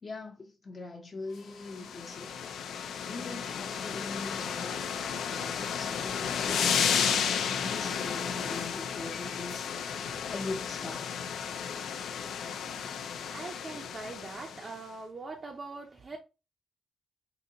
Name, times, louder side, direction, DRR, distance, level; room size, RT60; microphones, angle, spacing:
voice 1, 0.0-2.3 3.1-4.9 5.1-11.2, left 3 dB, 35° left, 0.5 m, -42 dB
sound 1, 1.6-14.8, left 7 dB, 85° left, 0.4 m, -33 dB
voice 2, 12.9-16.2, right 3 dB, 35° right, 0.4 m, -42 dB
3.8 x 2.5 x 2.7 m
cardioid pair, 130°, 0 cm